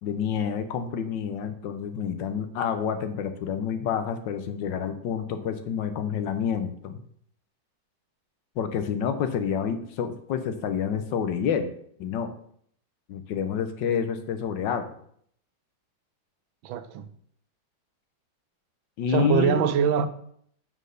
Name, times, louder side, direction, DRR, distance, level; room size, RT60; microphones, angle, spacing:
voice 1, 0.0-7.0 8.6-11.7 12.0-12.3 13.1-15.0 19.0-19.7, left 7 dB, 70° left, 1.4 m, -28 dB
voice 2, 16.6-17.1 19.1-20.1, right 7 dB, 85° right, 1.4 m, -23 dB
6.5 x 4.5 x 6.4 m
omnidirectional pair, 2.2 m